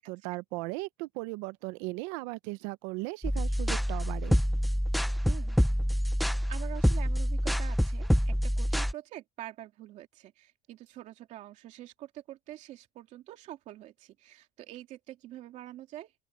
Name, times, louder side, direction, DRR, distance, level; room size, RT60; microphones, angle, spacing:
voice 1, 0.0-4.4, right 23 dB, 85° right, 0.7 m, -37 dB
sound 1, 3.2-8.9, equal, ahead, 0.3 m, -27 dB
voice 2, 5.2-5.6 6.5-16.1, right 14 dB, 45° right, 2.8 m, -46 dB
open air
cardioid pair, 175°, 17 cm